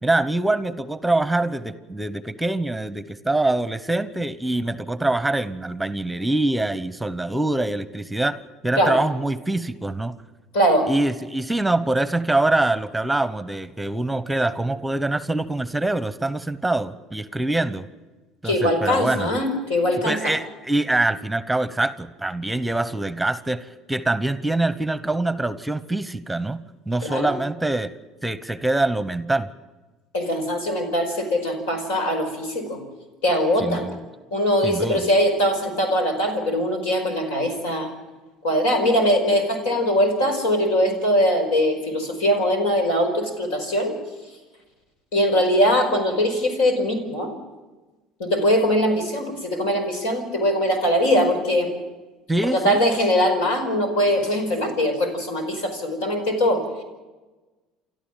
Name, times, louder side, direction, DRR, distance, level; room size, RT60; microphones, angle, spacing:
voice 1, 0.0-8.4 8.6-10.1 10.9-17.9 18.4-19.3 20.0-26.6 26.9-27.9 28.2-29.5 33.6-34.0 34.6-35.1 52.3-52.8, right 2 dB, 5° right, 14 dB, 1.0 m, -24 dB
voice 2, 10.5-10.9 18.4-20.3 27.0-27.3 30.1-32.8 33.2-33.8 34.3-37.9 38.4-44.0 45.1-47.3 48.2-51.7 52.5-56.6, equal, 80° left, 5 dB, 5.0 m, -21 dB
29.0 x 12.5 x 7.4 m, 1.2 s
hypercardioid pair, 70°, 0 cm